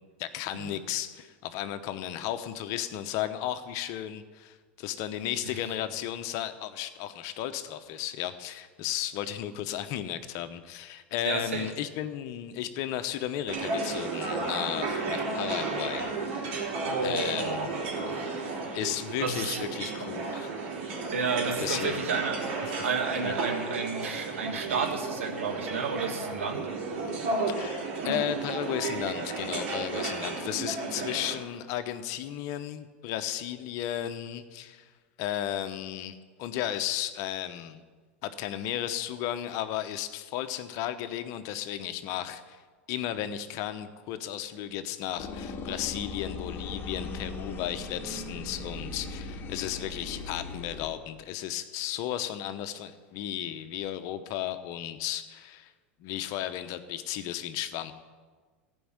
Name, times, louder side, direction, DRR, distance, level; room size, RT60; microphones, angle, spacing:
voice 1, 0.2-17.9 18.7-20.5 21.6-22.2 22.6-22.7 23.2-23.3 27.5-34.9 35.2-37.8 38.2-42.6 42.9-55.7 56.0-57.9, left 11 dB, 55° left, 10 dB, 1.0 m, -34 dB
voice 2, 11.2-11.7 16.9-17.7 18.1-18.4 18.6-18.8 19.2-19.6 21.1-26.7, right 5 dB, 85° right, 3 dB, 1.9 m, -32 dB
sound 1, 13.5-31.3, right 3 dB, 65° right, 3.7 m, -33 dB
sound 2, 45.2-50.9, left 3 dB, 35° left, 1.6 m, -38 dB
14.5 x 5.5 x 8.9 m, 1.4 s
hypercardioid pair, 95°, 7 cm